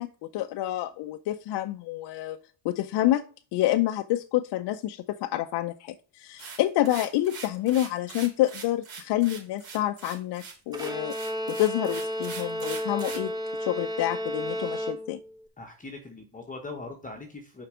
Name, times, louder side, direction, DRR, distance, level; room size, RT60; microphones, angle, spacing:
voice 1, 0.0-2.4 2.6-3.3 3.5-11.2 11.5-13.3 13.6-15.2, left 14 dB, 60° left, 8 dB, 0.6 m, -28 dB
sound 1, 6.4-13.3, right 5 dB, 55° right, 3.6 m, -42 dB
Bowed string instrument, 10.7-15.4, equal, 10° right, 0.8 m, -32 dB
voice 2, 15.6-17.6, left 3 dB, 20° left, 3 dB, 1.0 m, -41 dB
5.8 x 4.7 x 4.9 m, 0.38 s
cardioid pair, 115°, 45 cm